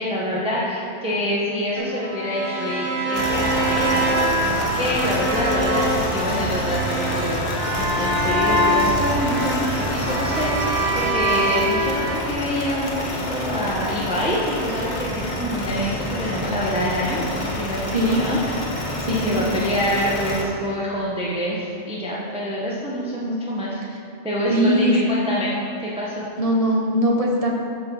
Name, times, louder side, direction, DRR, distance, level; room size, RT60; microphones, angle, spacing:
voice 1, 0.0-18.5 19.1-23.8 24.2-25.5 25.8-26.3, equal, 5° right, -6 dB, 0.8 m, -26 dB
sound 1, 1.7-12.1, right 1 dB, 20° right, 1.4 m, -24 dB
sound 2, 3.1-20.4, equal, 40° left, 1.0 m, -28 dB
voice 2, 19.0-19.5 23.9-24.0 24.5-24.9 26.4-27.5, equal, 35° right, -1 dB, 0.7 m, -20 dB
7.5 x 4.2 x 6.1 m, 2.6 s
omnidirectional pair, 1.2 m